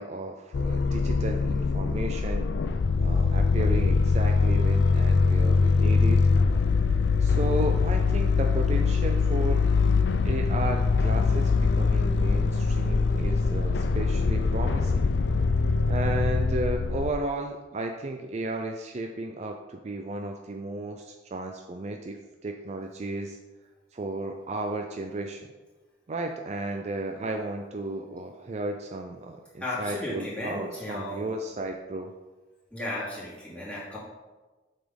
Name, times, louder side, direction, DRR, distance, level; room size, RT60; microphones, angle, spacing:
voice 1, 0.0-2.5 3.0-6.2 7.2-9.7 10.2-15.0 15.9-23.4 23.9-25.5 26.1-32.1, right 2 dB, 35° right, 4 dB, 0.4 m, -34 dB
sound 1, 0.5-17.1, left 4 dB, 70° left, 0.4 m, -23 dB
voice 2, 29.6-31.3 32.7-34.0, left 1 dB, 5° left, -9 dB, 2.5 m, -34 dB
7.6 x 4.2 x 5.2 m, 1.2 s
head